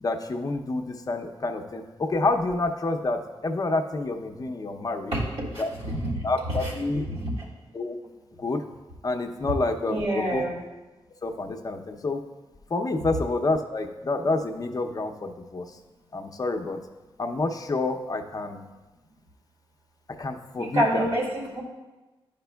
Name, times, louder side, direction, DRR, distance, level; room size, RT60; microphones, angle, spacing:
voice 1, 0.0-5.1 5.6-5.7 6.2-7.0 7.7-8.0 8.4-8.6 9.0-10.4 11.2-12.2 12.7-15.8 16.1-16.8 17.2-18.7 20.2-21.1, left 2 dB, 40° left, 5 dB, 0.7 m, -28 dB
voice 2, 5.5-6.2 6.6-7.3 9.8-10.6 20.6-21.6, right 1 dB, 80° right, -5 dB, 2.3 m, -28 dB
11.5 x 5.1 x 2.3 m, 1.1 s
cardioid pair, 75°, 10 cm